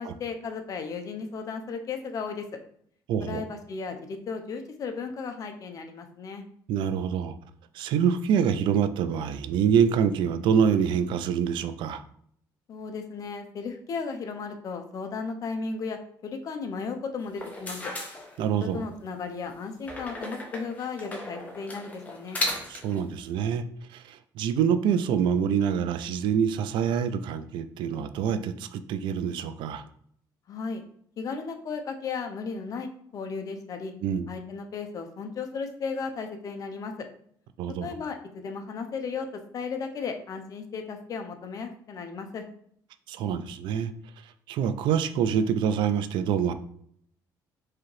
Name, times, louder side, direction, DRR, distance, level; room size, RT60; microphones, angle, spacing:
voice 1, 0.0-2.5 3.2-6.4 12.7-17.8 18.6-22.4 30.5-30.8 31.2-33.9 34.3-37.1 37.8-42.4, left 5 dB, 45° left, 6 dB, 0.6 m, -35 dB
voice 2, 3.1-3.4 6.7-7.3 7.7-12.0 18.4-18.8 22.7-23.6 23.9-29.8 34.0-34.3 37.6-37.9 43.1-43.9 44.5-46.5, right 8 dB, 75° right, 11 dB, 0.4 m, -26 dB
sound 1, 17.3-18.8 19.8-23.0, left 1 dB, 20° left, 0.9 m, -35 dB
4.7 x 2.9 x 3.1 m, 0.65 s
cardioid pair, 125°, 8 cm